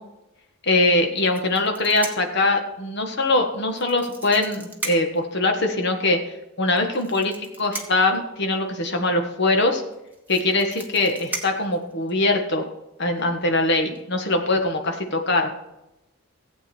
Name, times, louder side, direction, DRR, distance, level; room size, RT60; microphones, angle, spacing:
voice 1, 0.6-6.2 6.6-9.8 10.3-12.6 13.0-15.5, left 2 dB, 50° left, 4 dB, 1.6 m, -22 dB
sound 1, 1.3-2.4 3.7-5.2 6.7-8.2 9.6-9.7 9.9-12.3 13.2-13.4 13.8-14.0, right 3 dB, 10° right, 1.3 m, -36 dB
15.5 x 8.2 x 4.5 m, 0.92 s
head